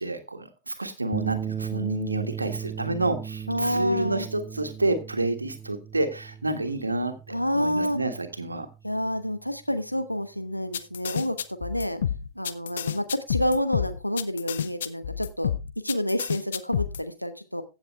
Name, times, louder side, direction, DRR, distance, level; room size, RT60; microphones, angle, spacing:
voice 1, 0.0-7.1 7.5-8.7, right 2 dB, 80° right, 7 dB, 1.6 m, -29 dB
sound 1, 1.1-9.6, right 8 dB, 15° right, 0.9 m, -37 dB
voice 2, 3.5-4.3 7.3-8.0 8.8-12.0 12.3-15.5 15.8-17.6, equal, 90° left, 9 dB, 1.1 m, -28 dB
sound 2, 10.7-17.0, left 9 dB, 65° left, 0.7 m, -29 dB
15.5 x 7.2 x 3.3 m, 0.29 s
figure-of-eight pair, 90°, 0 cm